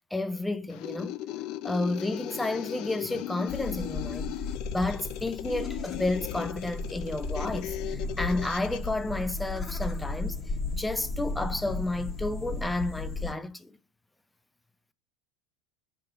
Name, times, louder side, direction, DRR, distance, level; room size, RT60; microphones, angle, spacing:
voice 1, 0.1-1.2 1.6-4.3 4.7-10.4 10.7-13.8, left 2 dB, 10° left, 0.6 m, -31 dB
sound 1, 0.7-8.9, left 13 dB, 55° left, 0.4 m, -37 dB
sound 2, 3.5-13.3, left 3 dB, 25° left, 1.4 m, -35 dB
5.3 x 3.8 x 5.7 m
hypercardioid pair, 85°, 0 cm